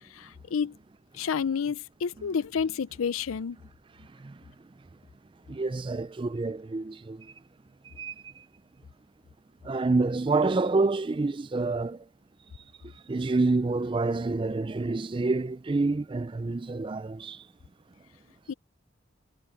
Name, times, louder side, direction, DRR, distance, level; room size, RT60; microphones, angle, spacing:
voice 1, 0.1-0.7 1.1-3.6 18.5-18.6, left 6 dB, 80° left, 0.5 m, -30 dB
voice 2, 5.5-7.3 8.0-8.1 9.6-12.0 13.1-17.4, right 3 dB, 25° right, 0.3 m, -27 dB
head